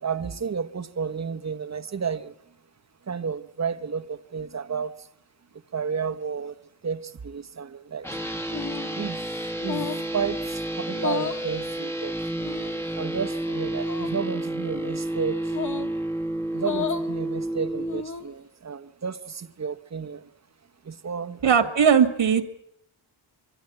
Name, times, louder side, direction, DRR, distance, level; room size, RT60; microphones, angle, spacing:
voice 1, 0.0-2.3 3.1-4.9 5.7-6.6 6.8-8.1 8.9-9.2 9.6-12.2 13.0-15.6 16.5-20.3 20.8-21.7, right 6 dB, 35° right, 1.1 m, -32 dB
sound 1, 8.0-18.0, right 1 dB, 5° left, 1.4 m, -30 dB
sound 2, 8.5-9.0 9.6-10.1 10.9-11.5 12.4-12.9 13.8-14.1 15.5-15.9 16.5-17.1 17.8-18.3, left 7 dB, 40° left, 2.0 m, -33 dB
voice 2, 21.4-22.4, right 7 dB, 65° right, 2.1 m, -18 dB
23.5 x 16.5 x 9.4 m
cardioid pair, 95°, 48 cm